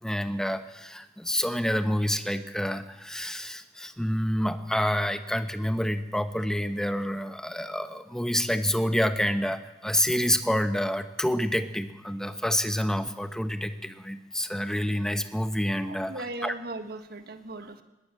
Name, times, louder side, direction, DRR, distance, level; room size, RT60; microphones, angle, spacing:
voice 1, 0.0-16.1 16.4-16.5, equal, 5° left, 9 dB, 1.0 m, -28 dB
voice 2, 15.8-17.8, right 2 dB, 60° right, 8 dB, 1.7 m, -38 dB
20.0 x 19.0 x 7.7 m, 1.0 s
head